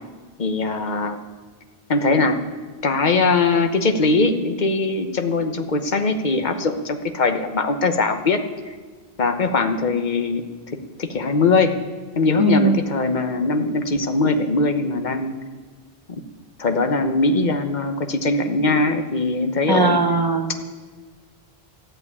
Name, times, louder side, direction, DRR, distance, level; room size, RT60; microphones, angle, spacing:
voice 1, 0.4-1.2 1.9-2.4 2.8-8.4 9.2-10.4 11.0-11.8 12.2-15.4 16.1-16.2 16.6-20.0, left 3 dB, 50° left, 7 dB, 1.1 m, -21 dB
voice 2, 12.4-12.7 19.7-20.5, right 3 dB, 25° right, 6 dB, 1.0 m, -19 dB
13.5 x 8.0 x 9.6 m, 1.5 s
omnidirectional pair, 1.0 m